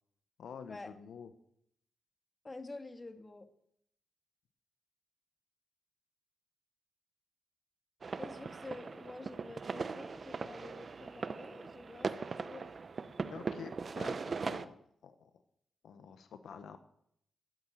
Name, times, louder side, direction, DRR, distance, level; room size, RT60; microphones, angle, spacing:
voice 1, 0.4-1.3 13.3-14.7 15.0-15.3 15.8-16.8, left 7 dB, 80° left, 9 dB, 0.9 m, -48 dB
voice 2, 2.4-3.5 8.2-12.7, left 2 dB, 25° left, 8 dB, 1.7 m, -48 dB
sound 1, 8.0-14.6, right 4 dB, 45° right, 0.8 m, -40 dB
12.5 x 8.5 x 9.0 m, 0.73 s
cardioid pair, 70°, 0 cm